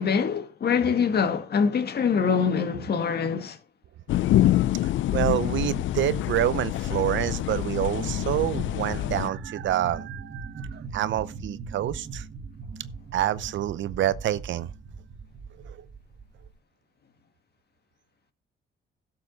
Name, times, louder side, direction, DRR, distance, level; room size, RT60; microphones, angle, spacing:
voice 1, 0.0-3.6, left 6 dB, 55° left, 1.7 m, -24 dB
sound 1, 4.1-9.3, left 14 dB, 75° left, 0.5 m, -26 dB
voice 2, 4.8-12.3 13.1-14.7 15.6-15.9, right 12 dB, 70° right, 0.7 m, -27 dB
sound 2, 7.9-16.5, right 4 dB, 40° right, 1.6 m, -39 dB
12.0 x 7.6 x 4.1 m
cardioid pair, 90°, 20 cm